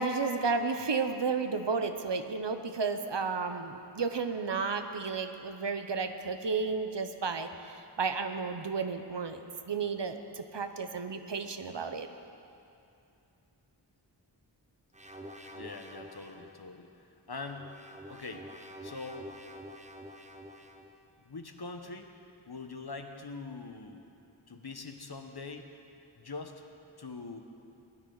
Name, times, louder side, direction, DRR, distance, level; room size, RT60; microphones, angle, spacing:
voice 1, 0.0-9.4 9.7-12.1, right 4 dB, 65° right, 8 dB, 0.8 m, -32 dB
sound 1, 14.9-16.6 17.3-21.0, equal, 15° right, 1.0 m, -48 dB
voice 2, 15.5-17.7 18.1-18.5 18.8-19.3 21.2-22.1 22.5-24.0 24.5-25.7 26.2-26.6 27.0-27.4, left 3 dB, 55° left, 5 dB, 1.1 m, -43 dB
19.0 x 12.0 x 4.0 m, 2.7 s
wide cardioid pair, 45°, 45 cm